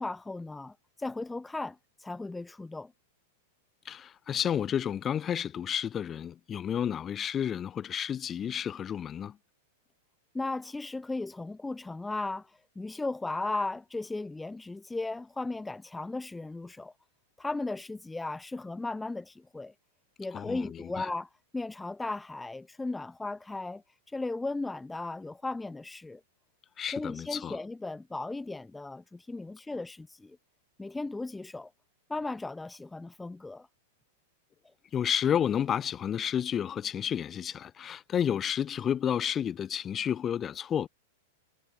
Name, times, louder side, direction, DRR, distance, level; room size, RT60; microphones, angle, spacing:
voice 1, 0.0-2.9 10.3-16.9 17.4-19.7 20.2-26.2 26.9-30.4 30.8-31.7 32.1-33.7, left 2 dB, 10° left, 2.8 m, -36 dB
voice 2, 3.8-9.4 20.3-21.1 26.8-27.6 34.9-40.9, left 9 dB, 25° left, 6.1 m, -31 dB
hypercardioid pair, 120°, 0 cm